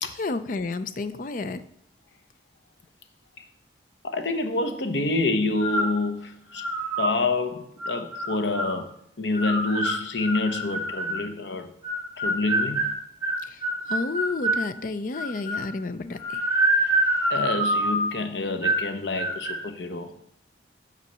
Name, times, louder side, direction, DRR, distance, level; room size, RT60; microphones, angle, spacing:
voice 1, 0.2-1.6 13.5-13.6 13.9-16.4, left 3 dB, 45° left, 0.5 m, -31 dB
voice 2, 4.0-6.6 7.0-8.9 9.2-11.7 12.2-12.9 17.3-20.1, left 3 dB, 75° left, 0.9 m, -27 dB
sound 1, 5.6-6.0 6.5-7.2 7.8-8.8 9.3-11.3 11.8-14.7 15.1-15.7 16.2-18.2 18.6-18.9 19.2-19.6, right 1 dB, 15° right, 1.4 m, -26 dB
8.3 x 4.1 x 6.7 m
head